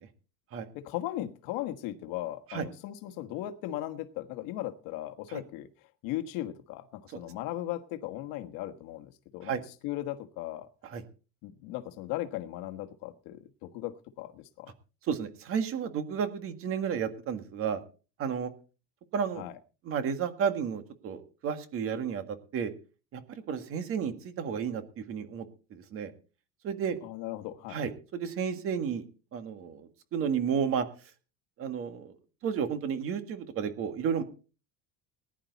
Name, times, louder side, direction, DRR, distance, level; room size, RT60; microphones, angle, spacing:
voice 1, 0.7-5.7 6.0-9.5 9.8-10.7 11.4-14.7 19.3-19.6 27.0-27.8, left 14 dB, 65° left, 1.4 m, -37 dB
voice 2, 15.1-17.8 18.2-18.5 19.1-19.4 19.8-22.2 22.5-22.7 23.1-25.5 25.7-26.1 26.6-27.0 27.7-29.0 29.3-30.8 31.6-32.1 32.4-34.2, right 7 dB, 40° right, 1.8 m, -32 dB
19.5 x 10.5 x 4.1 m
cardioid pair, 180°, 36 cm